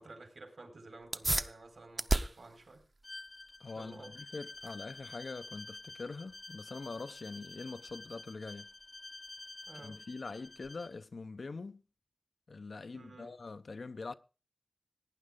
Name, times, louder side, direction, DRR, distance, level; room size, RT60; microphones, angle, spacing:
voice 1, 0.0-2.8 3.8-4.1 9.7-10.0 12.9-13.4, right 2 dB, 90° right, 4.3 m, -52 dB
sound 1, 1.0-11.1, right 2 dB, 40° right, 0.6 m, -40 dB
Bowed string instrument, 3.0-11.0, left 2 dB, 40° left, 0.6 m, -50 dB
voice 2, 3.6-8.7 9.7-11.8 12.5-14.1, left 3 dB, 90° left, 0.7 m, -44 dB
17.5 x 9.7 x 3.7 m
wide cardioid pair, 80°, 0 cm